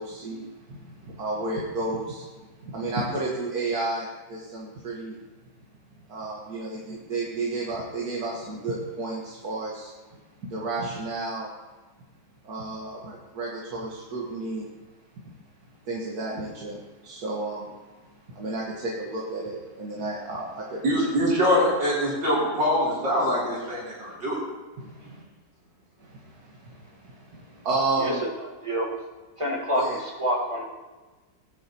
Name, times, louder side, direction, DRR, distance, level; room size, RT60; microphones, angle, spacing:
voice 1, 0.0-2.3 2.6-5.2 6.1-11.5 12.4-14.7 15.2-15.3 15.8-17.8 18.1-21.1 24.8-25.2 26.0-28.2 29.7-30.0, right 2 dB, 60° right, -4 dB, 2.0 m, -32 dB
voice 2, 20.8-24.4, equal, 90° right, -8 dB, 4.2 m, -23 dB
voice 3, 28.0-29.0 29.4-30.6, equal, 15° right, -2 dB, 1.8 m, -28 dB
18.0 x 10.5 x 3.0 m, 1.3 s
omnidirectional pair, 1.9 m